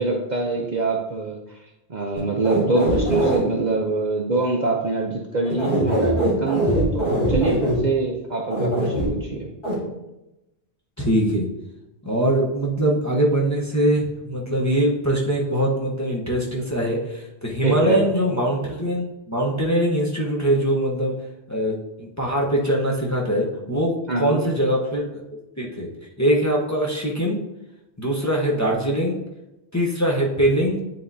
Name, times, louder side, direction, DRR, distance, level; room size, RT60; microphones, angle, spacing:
voice 1, 0.0-1.4 1.9-9.5 17.6-18.0 24.1-24.4, right 3 dB, 45° right, 0 dB, 0.7 m, -24 dB
sound 1, 2.1-3.4 5.5-7.8 8.5-9.1 9.6-9.7, right 1 dB, 55° left, 2.5 m, -22 dB
voice 2, 11.0-11.5 12.0-21.1 21.5-25.2 25.6-25.9 26.2-27.4 28.0-29.2 29.7-30.8, right 1 dB, 15° left, -3 dB, 0.9 m, -22 dB
9.7 x 3.7 x 2.7 m, 0.93 s
omnidirectional pair, 1.2 m